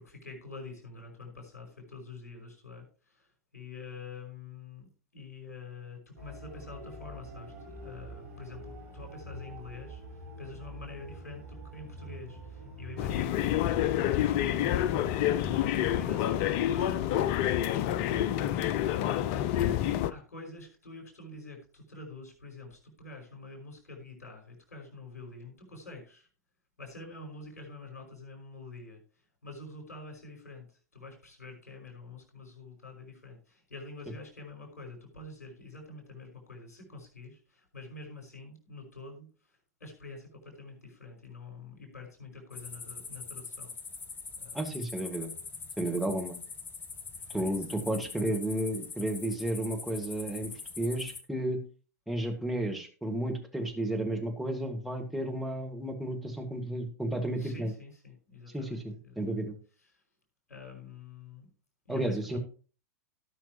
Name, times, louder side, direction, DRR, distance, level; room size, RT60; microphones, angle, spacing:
voice 1, 0.0-4.9 5.1-26.3 26.8-43.7 44.4-44.9 47.2-48.3 57.4-59.4 59.8-60.0 60.5-61.5 61.9-62.4, left 3 dB, 70° left, 2 dB, 5.2 m, -47 dB
sound 1, 6.2-16.1, right 2 dB, 60° right, 4.1 m, -46 dB
sound 2, 13.0-20.1, left 12 dB, 45° left, 0.5 m, -28 dB
sound 3, 42.5-51.2, left 5 dB, 25° left, 1.4 m, -43 dB
voice 2, 44.5-45.3 45.8-46.3 47.3-51.6 52.1-57.7 58.5-59.6 61.9-62.4, right 1 dB, ahead, 1 dB, 2.0 m, -32 dB
17.5 x 5.8 x 3.1 m, 0.39 s
figure-of-eight pair, 90°, 9 cm